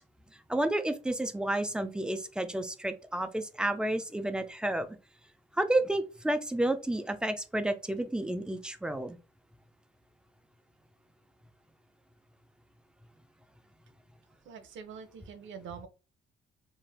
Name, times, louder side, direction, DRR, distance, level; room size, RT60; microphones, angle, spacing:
voice 1, 0.5-4.9 5.6-9.2, right 1 dB, 5° right, 8 dB, 0.4 m, -30 dB
voice 2, 14.4-15.9, right 6 dB, 70° right, 8 dB, 0.7 m, -45 dB
3.2 x 2.5 x 2.3 m, 0.31 s
cardioid pair, 90°, 20 cm